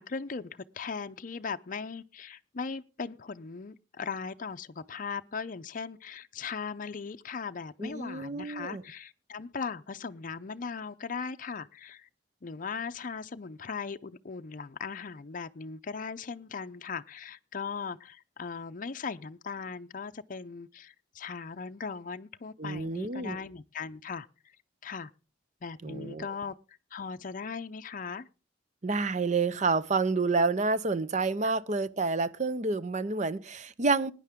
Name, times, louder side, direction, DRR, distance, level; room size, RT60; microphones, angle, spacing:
voice 1, 0.0-12.1 12.4-24.6 24.8-25.1 25.6-26.6 26.9-28.3 31.4-31.5, left 5 dB, 45° left, 0.5 m, -38 dB
voice 2, 7.8-8.8 22.6-23.4 25.8-26.3 28.8-34.1, right 3 dB, 40° right, 0.6 m, -29 dB
18.5 x 9.8 x 3.6 m
head